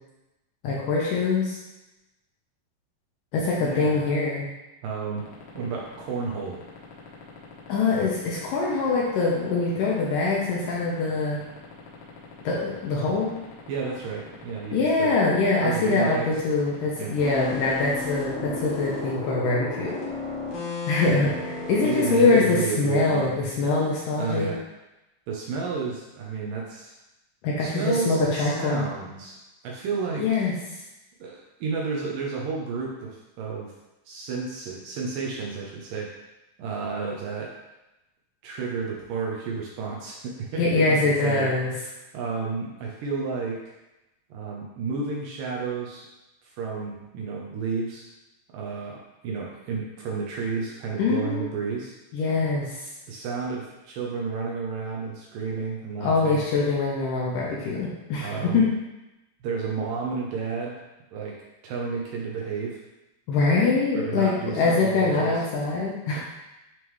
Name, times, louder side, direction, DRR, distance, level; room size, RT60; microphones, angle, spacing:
voice 1, 0.6-1.6 3.3-4.5 7.7-11.4 12.4-13.3 14.7-20.0 20.9-24.5 27.4-28.9 30.2-30.5 40.6-41.7 51.0-51.4 52.1-52.7 56.0-58.6 63.3-66.2, left 3 dB, 70° left, -4 dB, 2.2 m, -23 dB
voice 2, 3.6-4.1 4.8-5.2 5.5-6.6 13.7-15.2 15.6-16.4 17.0-17.2 21.8-23.7 24.2-24.6 25.3-26.9 27.6-29.4 29.6-30.5 31.2-33.7 34.1-36.1 36.6-37.5 38.4-43.6 44.3-46.1 46.6-48.1 48.5-51.9 53.1-56.4 58.2-58.7 59.4-60.8 61.1-61.4 61.6-62.8 63.9-65.4, right 5 dB, 75° right, -2 dB, 2.0 m, -31 dB
sound 1, 5.2-17.5, left 6 dB, 90° left, 3.3 m, -45 dB
sound 2, 17.2-22.6, left 2 dB, 55° left, 2.1 m, -33 dB
9.2 x 3.5 x 3.1 m, 0.98 s
omnidirectional pair, 4.7 m